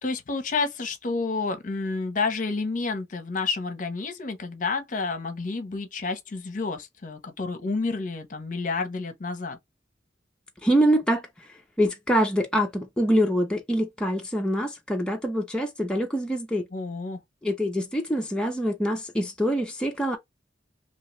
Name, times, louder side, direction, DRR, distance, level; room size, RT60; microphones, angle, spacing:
voice 1, 0.0-9.6 16.7-17.2, left 4 dB, 45° left, 0.7 m, -30 dB
voice 2, 10.6-11.3 11.8-16.7 17.4-20.2, equal, 5° left, 0.5 m, -25 dB
2.8 x 2.8 x 3.0 m
head